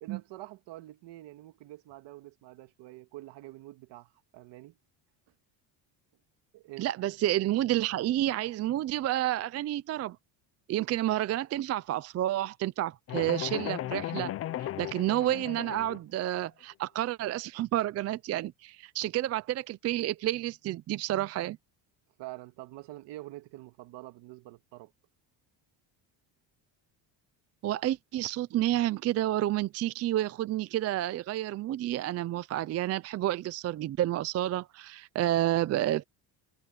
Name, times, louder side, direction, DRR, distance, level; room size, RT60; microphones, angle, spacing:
voice 1, 0.0-4.8 6.5-6.9 22.2-24.9, right 17 dB, 70° right, 1.9 m, -46 dB
voice 2, 6.8-10.2 10.7-14.3 14.6-21.6 27.6-36.0, right 14 dB, 35° right, 0.4 m, -30 dB
sound 1, 13.1-16.0, left 13 dB, 35° left, 0.4 m, -36 dB
cardioid pair, 160°, 45 cm